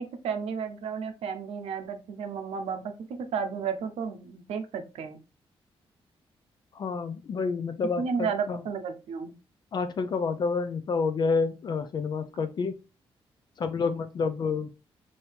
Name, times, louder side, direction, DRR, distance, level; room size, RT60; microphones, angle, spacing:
voice 1, 0.0-5.2 8.0-9.3, right 6 dB, 90° right, 8 dB, 0.6 m, -33 dB
voice 2, 6.7-8.6 9.7-12.7 13.6-14.7, left 5 dB, 45° left, 9 dB, 0.4 m, -29 dB
4.4 x 2.7 x 3.3 m, 0.31 s
cardioid pair, 115°, 10 cm